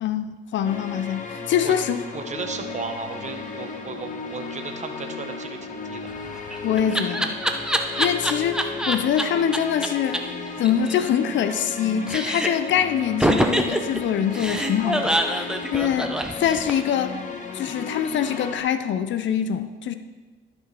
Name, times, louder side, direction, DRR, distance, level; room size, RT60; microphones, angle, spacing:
voice 1, 0.0-2.0 6.6-7.4 8.0-10.2 10.6-17.2 17.5-20.0, left 9 dB, 70° left, 10 dB, 0.6 m, -24 dB
sound 1, 0.6-18.6, left 4 dB, 40° left, 1.3 m, -35 dB
voice 2, 2.1-6.1, right 4 dB, 35° right, 6 dB, 1.1 m, -35 dB
Laughter, 6.1-9.2 9.5-9.6 9.8-9.9 10.1-10.2 10.5-11.8 12.1-12.7 13.2-16.9, right 1 dB, 5° right, 0.7 m, -25 dB
12.5 x 4.5 x 5.3 m, 1.3 s
cardioid pair, 90°, 20 cm